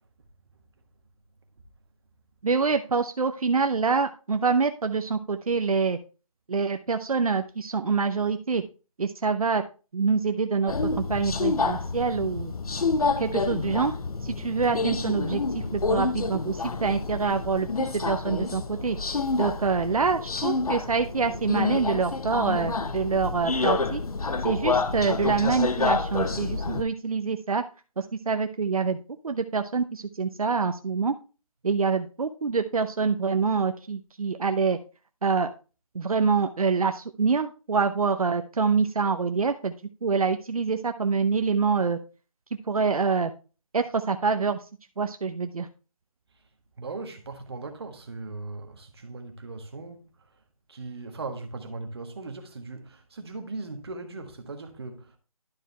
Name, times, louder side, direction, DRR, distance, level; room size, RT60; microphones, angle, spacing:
voice 1, 2.4-6.0 6.5-8.6 9.0-9.6 9.9-12.5 13.2-13.9 14.2-19.0 19.4-24.0 24.4-27.6 28.0-29.0 29.2-31.1 31.6-34.8 35.2-35.5 35.9-39.7 40.0-42.0 42.7-43.3 43.7-44.6 45.0-45.7, right 5 dB, 80° right, 0.8 m, -26 dB
Subway metro underground, 10.7-26.8, left 4 dB, 80° left, 0.9 m, -28 dB
voice 2, 46.8-50.1 50.7-55.2, right 3 dB, 45° right, 1.4 m, -38 dB
11.5 x 4.7 x 3.3 m
figure-of-eight pair, 170°, 18 cm